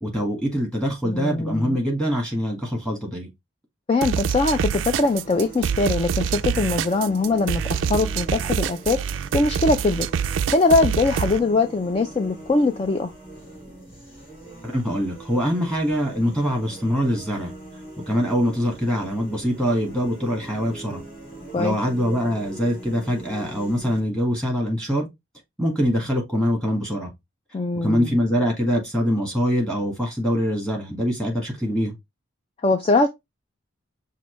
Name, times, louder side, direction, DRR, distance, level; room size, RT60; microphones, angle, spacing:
voice 1, 0.0-3.3 14.6-17.5 18.1-21.0 21.6-25.1 25.6-27.1 27.8-31.9, equal, 5° left, 1.6 m, -24 dB
voice 2, 1.0-1.8 3.9-9.0 9.3-10.1 10.5-13.1 21.5-21.8 27.5-28.2 32.6-33.1, left 3 dB, 30° left, 0.3 m, -22 dB
sound 1, 4.0-11.4, right 7 dB, 70° right, 0.3 m, -25 dB
sound 2, 5.0-24.0, right 2 dB, 45° left, 3.3 m, -41 dB
5.8 x 2.6 x 3.1 m
head